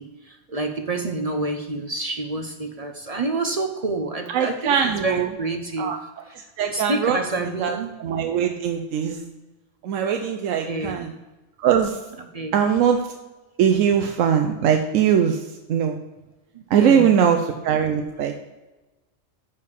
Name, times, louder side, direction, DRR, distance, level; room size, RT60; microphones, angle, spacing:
voice 1, 0.0-6.0 6.3-6.4 6.7-8.0 10.7-11.2 12.3-12.5 16.5-17.2, right 2 dB, 45° right, 5 dB, 0.5 m, -28 dB
voice 2, 4.3-5.3 5.8-6.0 6.6-7.2 7.6-9.2 9.8-11.1 11.6-12.0 12.5-13.0 13.6-16.0 16.7-18.3, right 8 dB, 85° right, 5 dB, 1.0 m, -21 dB
6.5 x 5.2 x 6.9 m, 1.1 s
omnidirectional pair, 1.3 m